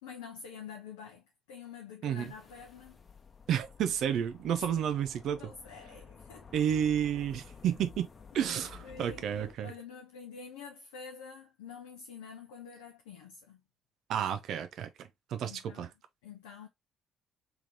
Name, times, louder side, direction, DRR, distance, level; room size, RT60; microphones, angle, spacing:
voice 1, 0.0-3.0 4.7-4.9 5.3-6.5 8.3-13.6 15.4-15.9 16.2-16.7, left 6 dB, 75° left, 0.7 m, -48 dB
sound 1, 2.2-9.5, left 6 dB, 35° left, 1.0 m, -53 dB
voice 2, 3.5-5.5 6.5-8.1 8.3-9.7 14.1-15.9, right 9 dB, 60° right, 0.7 m, -31 dB
3.6 x 3.6 x 2.8 m
figure-of-eight pair, 45°, 0 cm